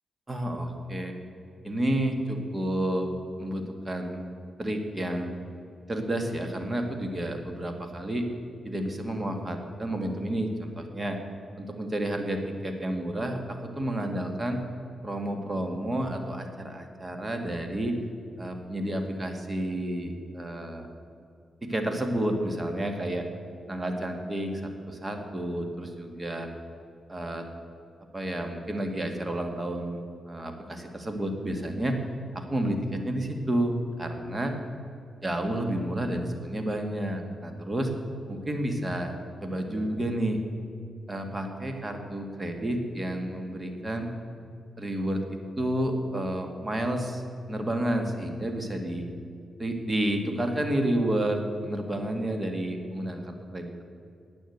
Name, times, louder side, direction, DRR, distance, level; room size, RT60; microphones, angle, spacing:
voice 1, 0.3-1.1 1.6-3.1 3.4-4.3 4.6-5.3 5.9-8.3 8.6-11.2 11.6-14.6 15.0-18.0 18.4-20.9 21.6-23.2 23.7-24.6 24.9-26.5 27.1-27.5 28.1-30.0 30.3-32.0 32.3-34.6 35.2-37.9 38.3-39.1 39.4-40.4 41.1-44.1 44.8-45.2 45.6-47.2 47.5-49.1 49.6-53.8, right 1 dB, 25° right, 4 dB, 1.9 m, -30 dB
10.5 x 8.8 x 8.0 m, 2.4 s
cardioid pair, 80°, 0 cm